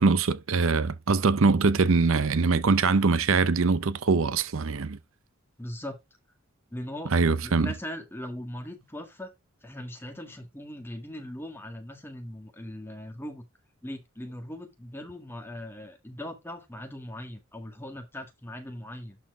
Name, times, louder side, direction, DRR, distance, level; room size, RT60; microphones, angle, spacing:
voice 1, 0.0-5.0 7.1-7.7, right 4 dB, 70° right, 0.6 m, -23 dB
voice 2, 5.6-6.0 6.7-7.2 7.4-9.3 9.6-13.4 13.8-19.2, left 1 dB, 10° left, 1.6 m, -39 dB
11.5 x 4.4 x 3.6 m
head